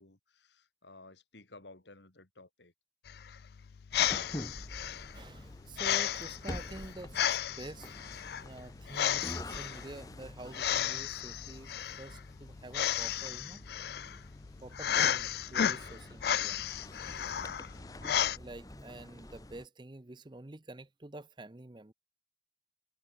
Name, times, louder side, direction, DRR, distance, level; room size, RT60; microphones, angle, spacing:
voice 1, 0.0-2.7, left 2 dB, 80° left, 2.9 m, -55 dB
sound 1, 3.1-18.4, left 10 dB, 60° left, 0.4 m, -33 dB
sound 2, 3.9-19.7, left 1 dB, 20° left, 1.1 m, -47 dB
voice 2, 5.1-13.6 14.6-16.6 18.0-21.9, right 2 dB, 25° right, 0.6 m, -48 dB
head